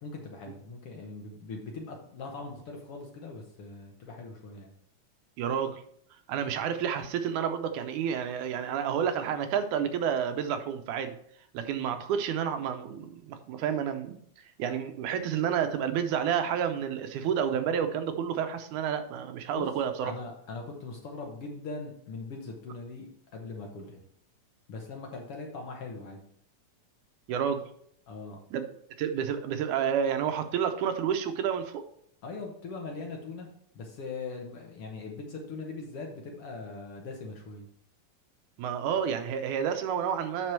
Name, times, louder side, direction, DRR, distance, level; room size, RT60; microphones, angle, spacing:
voice 1, 0.0-4.7 19.5-19.7 20.0-24.0 24.7-26.2 28.1-28.4 32.2-33.5 33.7-37.7, left 3 dB, 60° left, 1 dB, 1.7 m, -41 dB
voice 2, 5.4-5.8 6.3-11.2 11.5-14.2 14.6-20.1 27.3-27.7 28.5-28.7 29.0-31.8 38.6-40.5, right 8 dB, 80° right, 8 dB, 2.2 m, -30 dB
7.7 x 6.0 x 4.5 m, 0.67 s
omnidirectional pair, 3.5 m